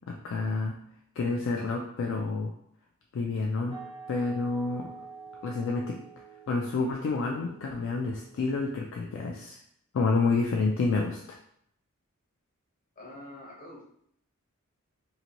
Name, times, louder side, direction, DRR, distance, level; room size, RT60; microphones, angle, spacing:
voice 1, 0.1-0.7 1.2-2.5 3.1-3.8 4.1-4.9 5.4-6.0 6.5-9.6 9.9-11.4, left 3 dB, 60° left, 1 dB, 0.3 m, -29 dB
sound 1, 3.7-9.1, right 5 dB, 30° right, 0.5 m, -48 dB
voice 2, 13.0-13.8, left 1 dB, 40° left, -3 dB, 0.8 m, -45 dB
2.8 x 2.5 x 2.9 m, 0.68 s
head